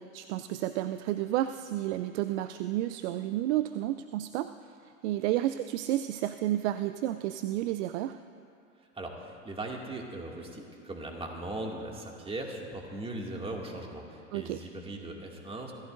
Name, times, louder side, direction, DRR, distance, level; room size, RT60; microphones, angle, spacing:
voice 1, 0.0-4.5 4.8-8.2 14.3-14.6, right 13 dB, 60° right, 11 dB, 0.5 m, -31 dB
voice 2, 8.9-15.7, right 2 dB, 15° right, 0 dB, 2.2 m, -39 dB
26.5 x 14.5 x 2.6 m, 2.5 s
hypercardioid pair, 95°, 40 cm